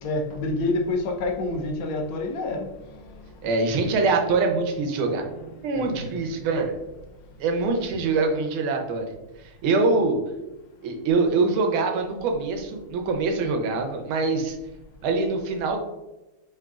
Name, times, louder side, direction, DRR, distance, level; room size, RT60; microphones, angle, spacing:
voice 1, 0.0-2.7 2.9-3.3 5.7-6.0, left 2 dB, 80° left, 1 dB, 1.5 m, -28 dB
voice 2, 3.4-6.7 7.4-9.1 9.6-10.2 10.8-14.5 15.0-15.8, right 3 dB, 80° right, 3 dB, 1.5 m, -24 dB
4.9 x 2.7 x 2.3 m, 1.0 s
omnidirectional pair, 2.3 m